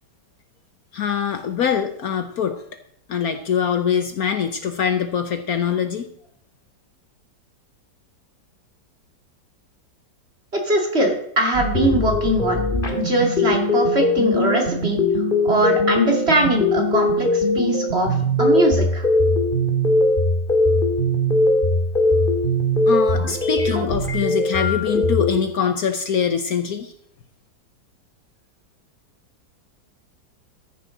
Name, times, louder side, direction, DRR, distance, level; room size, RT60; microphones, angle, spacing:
voice 1, 0.9-2.6 3.1-6.1 22.9-26.9, left 7 dB, 60° left, 7 dB, 1.2 m, -23 dB
voice 2, 10.6-12.6 12.9-15.0 15.4-19.1, right 1 dB, 35° right, 1 dB, 2.6 m, -21 dB
sound 1, 11.5-25.4, left 1 dB, 30° left, 2.3 m, -20 dB
13.5 x 11.0 x 3.9 m, 0.71 s
omnidirectional pair, 1.9 m